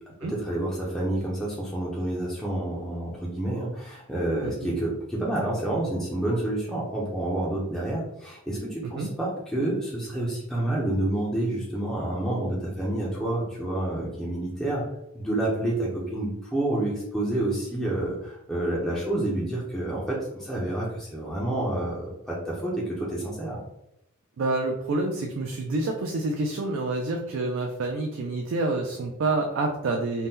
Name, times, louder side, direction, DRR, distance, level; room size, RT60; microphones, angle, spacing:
voice 1, 0.1-14.8 15.1-23.6, right 1 dB, ahead, -6 dB, 0.4 m, -29 dB
voice 2, 24.4-30.3, right 2 dB, 65° right, 2 dB, 0.3 m, -28 dB
2.7 x 2.1 x 3.5 m, 0.84 s
head